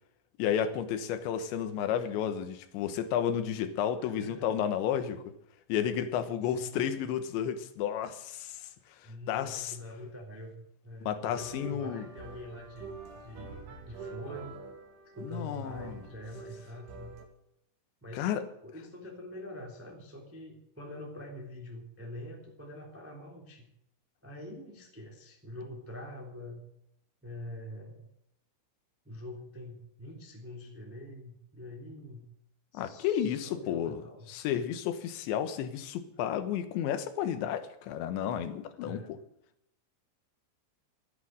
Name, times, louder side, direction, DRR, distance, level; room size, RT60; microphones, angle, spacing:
voice 1, 0.4-5.3 5.7-8.7 9.3-9.8 11.0-12.1 15.2-16.0 18.1-18.4 32.7-34.0 34.3-39.2, left 9 dB, 75° left, 11 dB, 3.3 m, -32 dB
voice 2, 4.0-4.5 6.4-7.0 9.0-14.6 15.1-17.2 18.0-18.3 18.6-23.7 24.2-26.6 27.2-28.1 29.0-32.3 32.7-34.3 38.8-39.1, left 1 dB, 5° right, 0 dB, 1.8 m, -45 dB
sound 1, 11.2-17.3, right 4 dB, 75° right, 4.7 m, -46 dB
14.0 x 11.0 x 7.7 m, 0.77 s
omnidirectional pair, 5.6 m